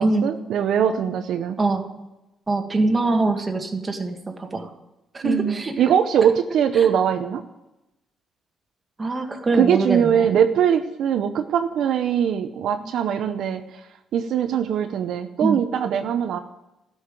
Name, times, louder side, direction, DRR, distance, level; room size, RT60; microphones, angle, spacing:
voice 1, 0.0-1.6 5.2-7.4 9.6-13.6 14.1-16.4, right 8 dB, 75° right, 8 dB, 0.7 m, -21 dB
voice 2, 1.6-2.0 2.5-4.7 5.1-5.9 6.7-6.9 9.0-10.3 12.8-12.9 15.4-15.6, right 2 dB, 25° right, 4 dB, 1.7 m, -24 dB
13.0 x 5.6 x 9.0 m, 0.95 s
cardioid pair, 90°, 0 cm